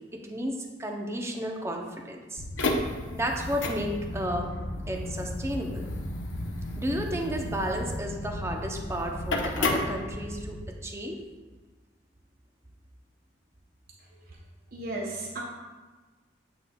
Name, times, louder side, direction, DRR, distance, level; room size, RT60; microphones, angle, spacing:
voice 1, 0.1-2.4 3.1-4.5 4.9-5.9 6.8-11.3, equal, 15° right, 1 dB, 0.6 m, -33 dB
sound 1, 2.4-10.6, left 2 dB, 85° left, 0.7 m, -32 dB
voice 2, 14.0-14.4 14.7-15.4, right 2 dB, 55° right, -2 dB, 0.7 m, -36 dB
8.3 x 6.0 x 2.3 m, 1.3 s
head